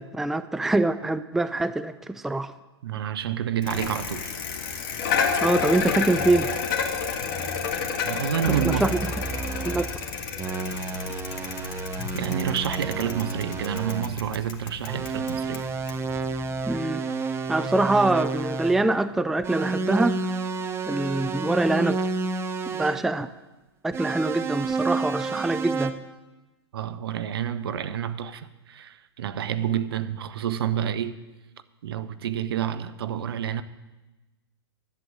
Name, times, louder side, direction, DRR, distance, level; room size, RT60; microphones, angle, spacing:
voice 1, 0.0-2.5 5.4-6.5 8.8-8.9 9.7-9.9 16.7-17.0 17.5-20.1 20.9-22.0 22.7-23.3 23.8-25.9, right 2 dB, ahead, 0.4 m, -24 dB
voice 2, 2.8-4.4 8.0-9.0 12.1-15.7 26.7-31.2 31.8-33.6, right 9 dB, 65° right, 0.8 m, -29 dB
Bicycle, 3.6-16.7, left 6 dB, 50° left, 1.6 m, -31 dB
sound 1, 8.4-10.0 10.4-14.2 14.8-18.9 19.4-23.0 23.9-25.9, right 4 dB, 20° right, 0.9 m, -30 dB
11.0 x 7.8 x 9.0 m
figure-of-eight pair, 110°, 14 cm